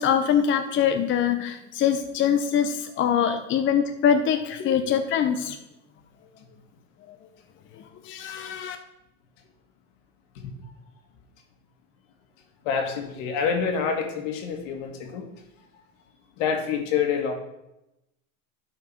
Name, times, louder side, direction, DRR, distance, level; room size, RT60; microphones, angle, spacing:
voice 1, 0.0-5.6 7.1-7.2 7.8-8.8, left 8 dB, 30° left, 6 dB, 0.7 m, -24 dB
voice 2, 12.7-15.3 16.4-17.3, left 6 dB, 70° left, 4 dB, 2.1 m, -27 dB
11.5 x 4.6 x 6.2 m, 0.90 s
supercardioid pair, 110°, 39 cm